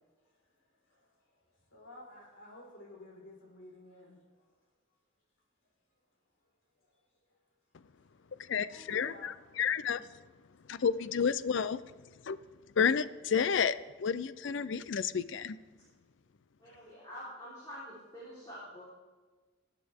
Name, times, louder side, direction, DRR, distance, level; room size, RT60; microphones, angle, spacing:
voice 1, 0.2-4.5 6.8-7.4 8.0-9.6 9.9-10.0, left 1 dB, 90° left, -3 dB, 4.4 m, -55 dB
voice 2, 8.5-10.0 10.7-11.8 12.3-12.4 12.8-15.6, left 6 dB, 70° left, 15 dB, 0.4 m, -30 dB
voice 3, 16.6-18.8, equal, 20° left, -9 dB, 3.6 m, -46 dB
19.5 x 8.4 x 3.5 m, 1.3 s
head